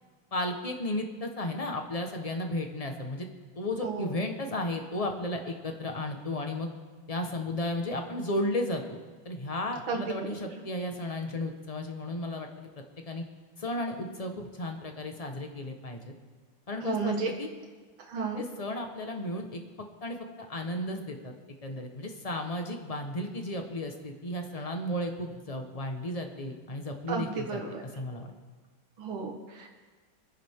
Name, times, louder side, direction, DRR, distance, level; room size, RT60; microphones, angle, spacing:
voice 1, 0.3-3.3 3.6-6.7 7.1-12.7 13.0-13.2 13.6-16.1 16.7-17.5 18.4-19.6 20.0-21.3 21.6-27.6 27.9-28.3, left 1 dB, 25° left, 4 dB, 1.0 m, -34 dB
voice 2, 3.8-4.2 9.9-10.1 10.4-10.5 16.8-17.3 18.0-18.4 27.1-27.8 29.0-29.7, right 4 dB, 85° right, 1 dB, 2.3 m, -33 dB
25.0 x 10.0 x 3.7 m, 1.4 s
omnidirectional pair, 2.2 m